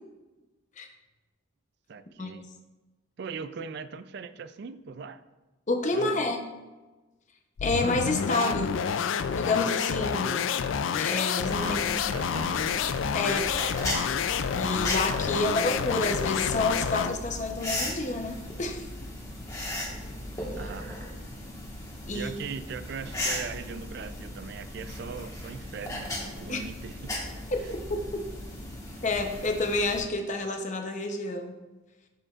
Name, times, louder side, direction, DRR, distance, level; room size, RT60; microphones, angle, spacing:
voice 1, 1.9-2.5 3.2-5.2 5.9-6.3 8.7-9.0 11.6-12.8 15.3-15.7 20.6-21.1 22.1-27.4, right 5 dB, 55° right, 13 dB, 0.3 m, -40 dB
voice 2, 5.7-6.5 7.6-8.8 9.3-10.5 10.9-11.8 13.1-13.5 14.5-18.9 22.1-22.3 26.5-26.7 29.0-31.6, left 2 dB, 35° left, 4 dB, 0.7 m, -29 dB
sound 1, 7.6-17.2, left 7 dB, 75° left, 0.3 m, -28 dB
sound 2, 11.4-30.0, left 1 dB, 15° left, 1.4 m, -37 dB
12.5 x 5.0 x 2.4 m, 1.2 s
head